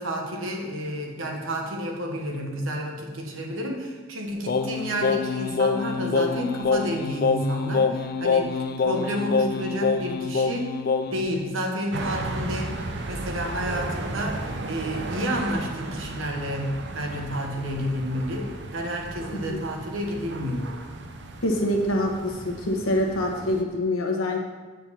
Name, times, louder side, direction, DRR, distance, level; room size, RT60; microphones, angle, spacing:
voice 1, 0.0-10.8 11.1-12.8 13.1-20.8, equal, 75° right, 1 dB, 1.5 m, -30 dB
Singing, 4.5-11.3, left 4 dB, 45° left, 0.4 m, -25 dB
sound 1, 11.9-23.6, right 2 dB, 55° right, 0.7 m, -35 dB
voice 2, 21.4-24.5, left 1 dB, 90° left, 2 dB, 1.3 m, -25 dB
8.0 x 4.5 x 7.0 m, 1.3 s
head